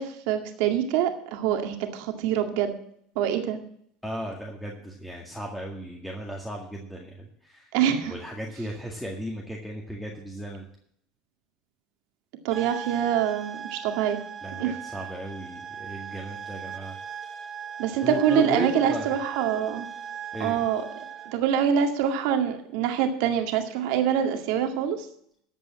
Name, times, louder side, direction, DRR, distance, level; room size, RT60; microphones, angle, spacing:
voice 1, 0.0-2.7 3.2-3.6 7.7-8.1 12.4-14.2 14.6-14.7 17.8-19.9 20.4-20.8 21.3-25.1, right 9 dB, 70° right, 5 dB, 2.0 m, -25 dB
voice 2, 4.0-7.7 8.0-10.7 14.4-17.4 18.0-19.1 20.3-20.6, right 1 dB, 5° left, -1 dB, 1.9 m, -36 dB
sound 1, 12.5-21.4, right 7 dB, 35° right, 2.3 m, -39 dB
14.5 x 5.5 x 7.6 m, 0.67 s
supercardioid pair, 105°, 0 cm